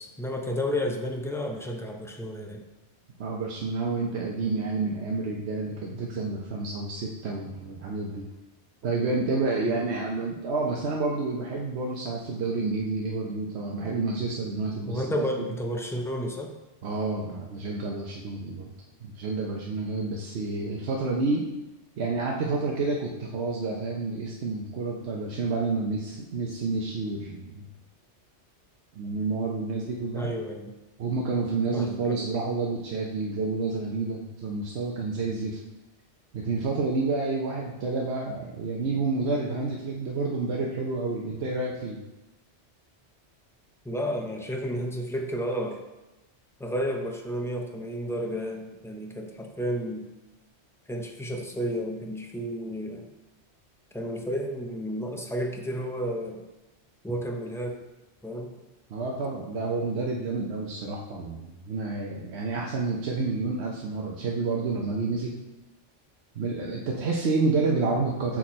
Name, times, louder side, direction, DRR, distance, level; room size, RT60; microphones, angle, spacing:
voice 1, 0.0-2.6 9.6-10.0 14.9-16.5 30.2-30.7 31.7-32.2 43.8-45.8 46.6-50.1 50.9-53.1 53.9-56.4 57.0-57.7 58.2-58.5, equal, 5° left, 2 dB, 0.3 m, -32 dB
voice 2, 3.2-8.3 8.8-15.5 16.8-18.6 19.0-21.4 22.0-27.5 29.0-30.3 31.0-35.6 36.3-42.0 58.9-65.3 66.4-68.4, right 3 dB, 70° right, -2 dB, 1.0 m, -29 dB
6.0 x 4.7 x 4.2 m, 1.0 s
omnidirectional pair, 1.2 m